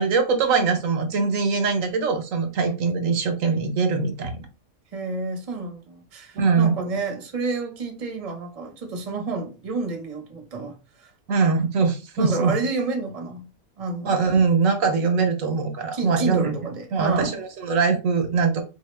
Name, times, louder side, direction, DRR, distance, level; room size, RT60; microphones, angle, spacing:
voice 1, 0.0-4.4 6.3-6.8 11.3-12.5 14.0-16.5 16.9-18.6, right 5 dB, 70° right, 1.0 m, -22 dB
voice 2, 4.9-11.1 12.2-13.4 13.8-14.1 15.9-17.3, right 3 dB, 30° right, 0.8 m, -29 dB
4.2 x 2.8 x 3.2 m
omnidirectional pair, 1.5 m